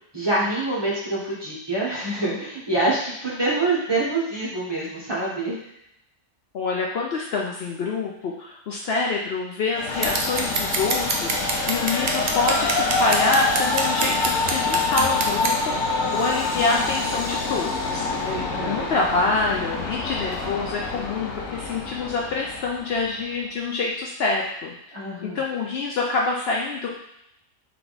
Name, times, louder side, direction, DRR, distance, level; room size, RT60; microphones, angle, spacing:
voice 1, 0.1-5.6 18.2-18.9 24.9-25.4, right 2 dB, 20° right, -7 dB, 1.0 m, -26 dB
voice 2, 6.5-18.0 18.7-24.7 25.2-26.9, left 3 dB, 65° left, -2 dB, 0.7 m, -26 dB
Train, 9.7-23.2, left 3 dB, 85° left, 1.1 m, -26 dB
Scissors, 10.0-15.5, right 3 dB, 55° right, 0.4 m, -26 dB
3.4 x 3.3 x 3.9 m, 0.76 s
omnidirectional pair, 1.3 m